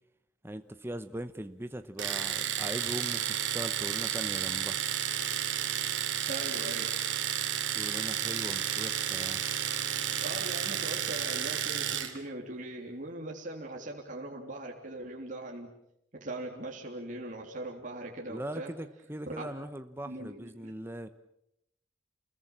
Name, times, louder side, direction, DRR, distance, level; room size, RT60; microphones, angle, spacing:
voice 1, 0.4-4.8 7.7-9.4 18.3-21.1, right 1 dB, 10° right, 9 dB, 0.9 m, -40 dB
Domestic sounds home sounds, 2.0-12.2, right 10 dB, 70° right, 2.9 m, -32 dB
voice 2, 6.3-6.9 10.2-15.7 16.1-18.7 19.3-19.5 20.0-20.7, right 1 dB, 40° right, 0 dB, 3.4 m, -40 dB
29.0 x 21.5 x 7.4 m, 0.78 s
head